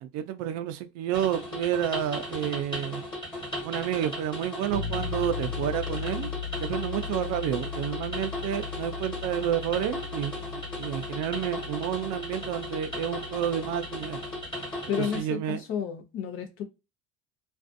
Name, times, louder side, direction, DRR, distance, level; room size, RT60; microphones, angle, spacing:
voice 1, 0.0-3.0 3.6-6.3 6.6-14.2 15.0-15.6, right 11 dB, 60° right, 0.5 m, -30 dB
sound 1, 1.1-15.2, left 1 dB, 15° left, 1.3 m, -36 dB
sound 2, 4.7-14.5, left 7 dB, 85° right, 0.8 m, -38 dB
voice 2, 14.9-16.6, left 8 dB, 45° left, 0.6 m, -31 dB
2.5 x 2.3 x 2.5 m
cardioid pair, 150°, 30 cm